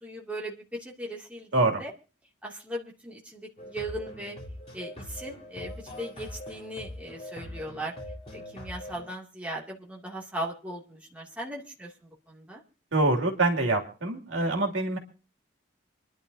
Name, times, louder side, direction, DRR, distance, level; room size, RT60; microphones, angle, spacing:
voice 1, 0.0-1.9 2.4-4.4 4.7-5.7 6.0-7.9 8.3-11.9 12.3-12.6, right 1 dB, 5° right, -3 dB, 2.5 m, -38 dB
voice 2, 1.5-1.8 12.9-15.0, right 2 dB, 75° right, 1 dB, 2.7 m, -25 dB
sound 1, 3.6-9.1, left 1 dB, 30° left, 3.8 m, -42 dB
28.5 x 11.0 x 2.8 m, 0.36 s
head